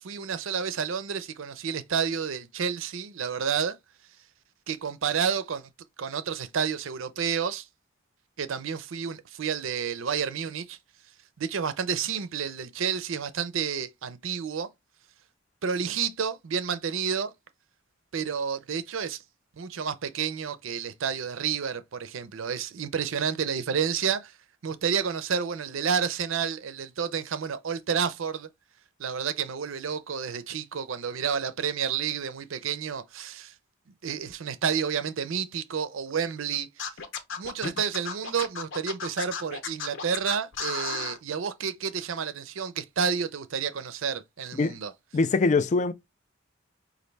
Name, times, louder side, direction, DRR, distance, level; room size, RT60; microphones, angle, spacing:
voice 1, 0.0-3.8 4.7-5.7 6.0-7.7 8.4-10.8 11.4-14.7 15.6-17.3 18.1-19.2 19.6-24.3 24.6-28.5 29.0-33.5 34.0-36.7 37.4-44.9, right 7 dB, 70° right, 0.5 m, -30 dB
Scratching (performance technique), 36.8-41.2, left 6 dB, 65° left, 0.8 m, -34 dB
voice 2, 45.1-45.9, left 3 dB, 35° left, 0.3 m, -23 dB
5.2 x 2.5 x 3.2 m
head